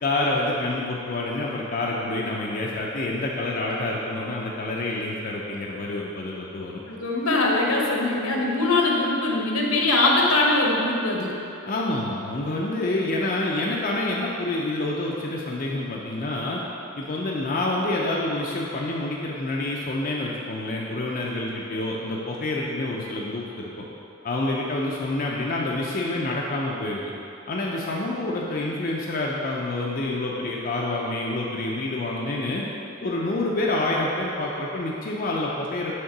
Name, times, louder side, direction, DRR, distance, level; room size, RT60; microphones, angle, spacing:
voice 1, 0.0-6.8 11.7-16.6 17.0-23.9 24.2-27.0 27.5-32.6 33.0-35.9, left 2 dB, 40° left, -3 dB, 0.5 m, -27 dB
voice 2, 6.9-11.3, left 2 dB, 80° left, -1 dB, 1.0 m, -22 dB
6.4 x 3.7 x 5.9 m, 2.8 s
head